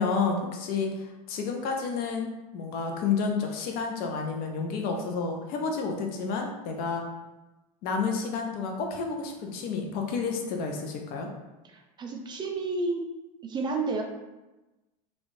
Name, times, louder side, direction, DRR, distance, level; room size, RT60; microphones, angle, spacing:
voice 1, 0.0-7.0 7.8-11.3, left 5 dB, 55° left, 2 dB, 0.6 m, -30 dB
voice 2, 11.6-13.1 13.4-14.0, right 3 dB, 25° right, 2 dB, 0.4 m, -31 dB
3.1 x 3.1 x 2.6 m, 1.1 s
supercardioid pair, 120°, 19 cm